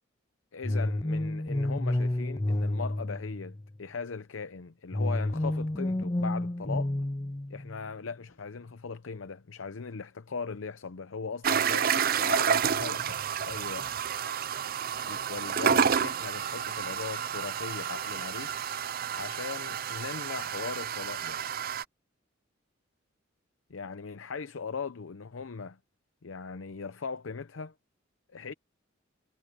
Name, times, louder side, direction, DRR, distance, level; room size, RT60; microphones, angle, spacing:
voice 1, 0.5-6.9 7.5-13.9 15.1-18.6 19.1-21.4 23.7-25.8 26.2-27.7 28.3-28.5, left 5 dB, 80° left, 0.7 m, -39 dB
sound 1, 0.6-3.8 4.9-7.8, left 1 dB, 20° left, 0.5 m, -30 dB
sound 2, 11.4-21.8, right 7 dB, 50° right, 0.5 m, -30 dB
head